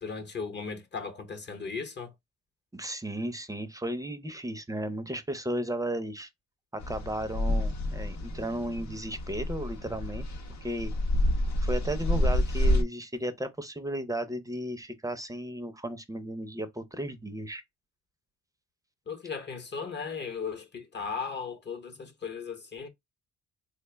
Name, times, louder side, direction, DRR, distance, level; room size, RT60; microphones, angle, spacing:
voice 1, 0.0-2.1 19.1-22.9, left 5 dB, 35° left, 0.9 m, -37 dB
voice 2, 2.7-6.3 6.7-10.3 10.6-10.9 11.6-17.6, right 1 dB, 10° right, 0.6 m, -34 dB
sound 1, 6.8-12.8, left 1 dB, 70° left, 0.8 m, -28 dB
3.4 x 2.2 x 3.3 m
cardioid pair, 90°, 30 cm